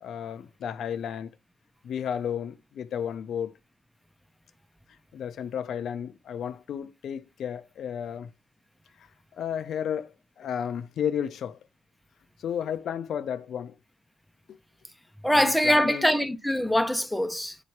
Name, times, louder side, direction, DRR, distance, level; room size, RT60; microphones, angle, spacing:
voice 1, 0.0-1.3 1.8-3.5 5.1-8.3 9.0-11.6 12.4-13.7 14.5-14.6 15.3-16.1, left 8 dB, 65° left, 0.4 m, -33 dB
voice 2, 15.2-17.6, equal, 5° left, 0.6 m, -23 dB
8.1 x 2.9 x 4.6 m
cardioid pair, 90°, 0 cm